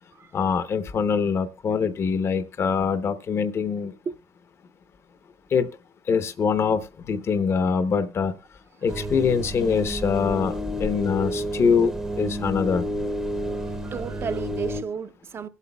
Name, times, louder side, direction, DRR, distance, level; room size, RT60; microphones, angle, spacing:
voice 1, 0.3-3.9 5.5-5.7 6.1-6.8 7.1-8.3 8.8-10.5 10.8-12.9, left 6 dB, 55° left, 0.8 m, -23 dB
voice 2, 8.8-9.1 13.5-15.5, right 6 dB, 45° right, 0.6 m, -34 dB
sound 1, 8.9-14.8, equal, 10° right, 0.7 m, -30 dB
23.5 x 8.2 x 2.3 m
cardioid pair, 105°, 5 cm